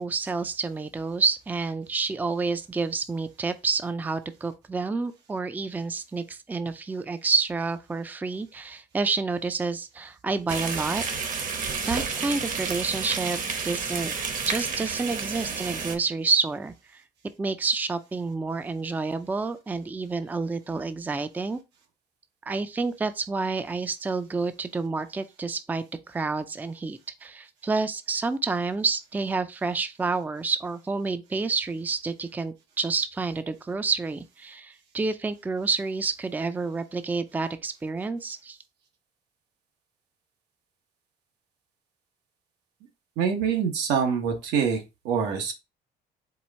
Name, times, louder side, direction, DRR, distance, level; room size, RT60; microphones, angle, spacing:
voice 1, 0.0-11.0 11.8-14.1 14.5-17.0 17.4-21.6 22.5-38.6, right 4 dB, 10° right, 0.4 m, -29 dB
sound 1, 10.5-16.0, right 5 dB, 50° right, 1.0 m, -31 dB
voice 2, 43.2-45.5, right 7 dB, 90° right, 1.2 m, -25 dB
4.6 x 2.4 x 4.2 m
cardioid pair, 110°, 17 cm